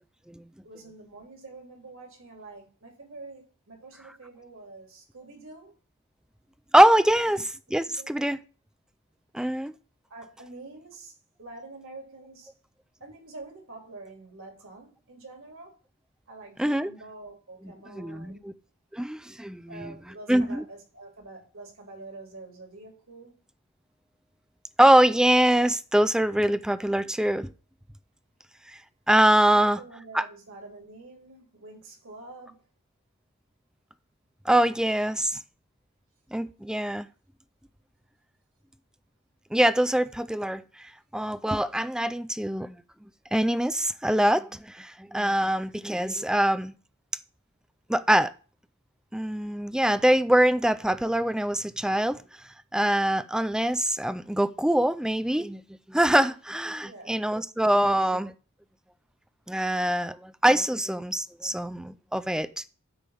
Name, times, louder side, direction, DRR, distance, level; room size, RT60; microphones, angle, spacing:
voice 1, 0.6-5.7 7.1-7.5 7.8-8.2 10.1-12.5 13.0-15.8 16.3-18.5 19.7-23.3 29.5-32.7 56.8-57.2 57.8-58.1, right 2 dB, 65° right, 2.7 m, -46 dB
voice 2, 6.7-8.4 9.3-9.7 16.6-16.9 17.9-18.5 18.9-20.0 20.3-20.6 24.8-27.5 28.7-28.8 29.1-29.8 30.1-30.2 34.5-35.4 36.3-37.1 39.5-42.8 43.3-46.7 47.9-48.3 49.1-52.2 52.7-55.6 55.9-58.3 59.5-62.7, right 1 dB, 5° right, 0.4 m, -24 dB
9.8 x 3.4 x 6.9 m
head